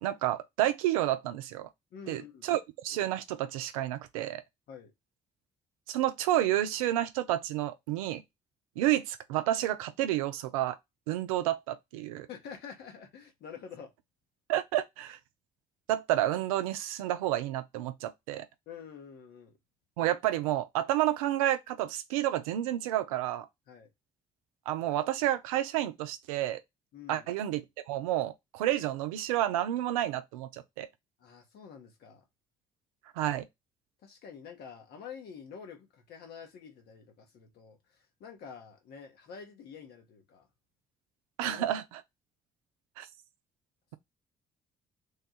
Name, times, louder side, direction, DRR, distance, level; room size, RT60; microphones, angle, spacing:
voice 1, 0.0-1.7 2.1-4.4 5.9-8.2 8.8-10.8 11.1-12.3 14.5-15.2 15.9-18.4 20.0-23.5 24.7-26.6 27.1-30.9 33.2-33.5 41.4-41.8 43.0-43.1, right 13 dB, 90° right, 0.4 m, -30 dB
voice 2, 1.9-2.5 4.7-4.9 12.3-13.9 18.7-19.6 23.7-23.9 26.9-27.3 31.2-32.2 34.0-40.5 41.4-41.7, left 7 dB, 70° left, 1.2 m, -47 dB
3.5 x 2.3 x 4.2 m
hypercardioid pair, 50°, 18 cm